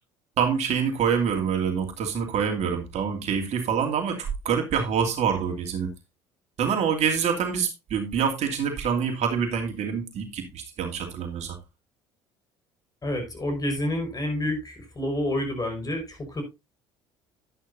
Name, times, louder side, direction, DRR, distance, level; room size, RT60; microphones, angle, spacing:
voice 1, 0.4-5.9 6.6-11.6, right 7 dB, 55° right, 4 dB, 2.6 m, -26 dB
voice 2, 13.0-16.4, left 1 dB, 25° left, 6 dB, 5.4 m, -29 dB
11.0 x 10.5 x 2.6 m, 0.24 s
hypercardioid pair, 65°, 14 cm